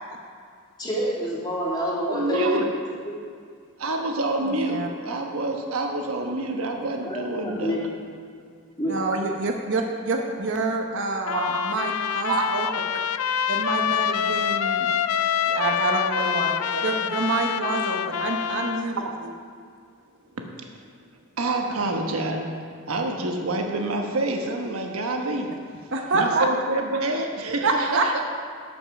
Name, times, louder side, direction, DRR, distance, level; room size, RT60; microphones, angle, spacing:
voice 1, 0.8-2.6 7.0-7.8 8.8-8.9, right 1 dB, 20° left, -7 dB, 2.7 m, -27 dB
voice 2, 1.9-2.7 3.8-7.7 9.0-9.2 11.2-11.6 12.3-12.8 16.2-16.9 18.8-19.2 21.4-22.5 22.9-25.5 26.1-28.2, right 2 dB, 80° right, 2 dB, 1.2 m, -27 dB
voice 3, 4.5-4.9 8.9-12.7 13.5-14.9 15.5-16.5 16.8-19.0 25.9-26.5 27.6-28.0, right 3 dB, 60° right, 2 dB, 0.9 m, -27 dB
Trumpet, 11.3-18.9, left 8 dB, 80° left, 0.4 m, -26 dB
12.5 x 5.5 x 6.1 m, 2.2 s
head